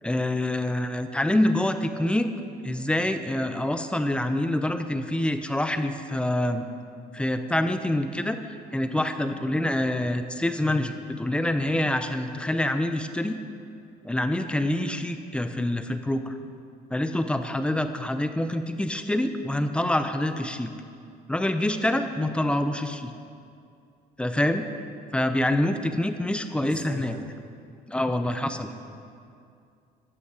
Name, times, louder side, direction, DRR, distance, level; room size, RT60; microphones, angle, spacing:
voice 1, 0.0-2.3 2.6-6.7 7.1-13.4 14.0-16.3 16.9-20.7 21.3-23.1 24.2-24.7 25.1-27.1 27.9-28.7, left 1 dB, 5° left, 8 dB, 0.7 m, -26 dB
voice 2, 26.6-27.3 28.3-29.0, right 1 dB, 50° right, -3 dB, 2.9 m, -43 dB
12.5 x 8.4 x 4.9 m, 2.4 s
cardioid pair, 110°, 17 cm